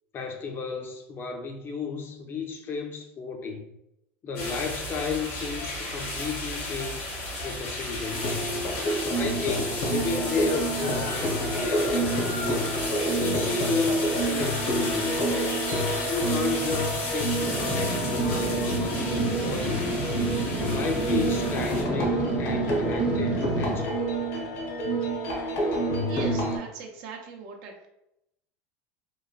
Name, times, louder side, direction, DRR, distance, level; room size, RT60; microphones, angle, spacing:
voice 1, 0.1-3.7 4.2-7.1 7.4-8.4 9.1-12.7 13.2-15.2 16.1-19.9 20.6-24.0, left 4 dB, 35° left, 0.5 m, -33 dB
sound 1, 4.3-21.8, left 2 dB, 85° left, 1.3 m, -34 dB
sound 2, 8.1-26.6, right 1 dB, 60° left, 0.8 m, -28 dB
sound 3, 17.4-23.8, right 2 dB, 15° right, 0.5 m, -32 dB
voice 2, 26.1-27.9, right 5 dB, 65° right, 0.5 m, -39 dB
3.0 x 2.1 x 2.4 m
supercardioid pair, 110°, 6 cm